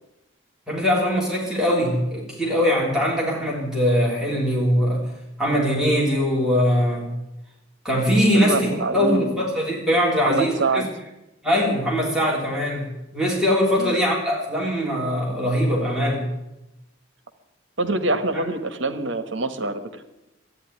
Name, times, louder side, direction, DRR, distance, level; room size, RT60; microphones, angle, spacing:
voice 1, 0.7-5.0 5.4-7.1 7.8-10.8 11.4-16.3 18.3-18.4, equal, 5° right, -4 dB, 3.3 m, -22 dB
voice 2, 8.3-9.4 10.2-10.9 13.8-14.0 17.8-20.0, right 2 dB, 65° right, 9 dB, 1.4 m, -25 dB
13.0 x 9.7 x 9.8 m, 0.93 s
head